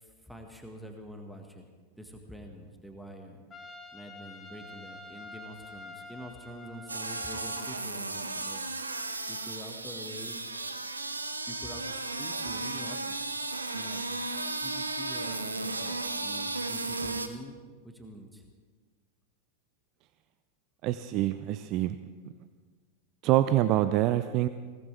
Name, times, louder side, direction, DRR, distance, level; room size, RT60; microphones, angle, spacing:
voice 1, 0.0-1.7 2.0-3.4 3.9-8.6 9.3-10.5 11.5-13.3 13.7-14.1 14.6-18.4, equal, ahead, 3 dB, 1.6 m, -46 dB
Trumpet, 3.5-8.1, left 2 dB, 15° left, 1.7 m, -47 dB
sound 1, 6.9-17.3, right 2 dB, 80° right, 1.0 m, -35 dB
voice 2, 20.8-22.0 23.2-24.5, right 13 dB, 40° right, 12 dB, 0.5 m, -25 dB
21.0 x 18.5 x 3.4 m, 1.5 s
figure-of-eight pair, 90°, 0 cm